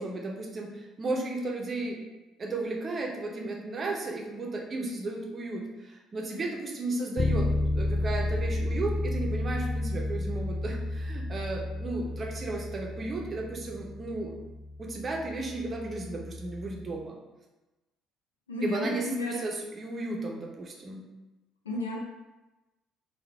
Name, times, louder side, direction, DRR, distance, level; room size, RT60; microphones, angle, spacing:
voice 1, 0.0-2.0 2.4-14.3 14.8-17.2 18.6-21.0, right 2 dB, 35° right, 0 dB, 0.9 m, -34 dB
Bass guitar, 7.2-17.0, left 2 dB, 25° left, 0.4 m, -32 dB
voice 2, 18.5-19.4 21.6-22.0, left 2 dB, 80° left, -1 dB, 0.6 m, -32 dB
3.9 x 2.9 x 4.1 m, 1.1 s
figure-of-eight pair, 50°, 0 cm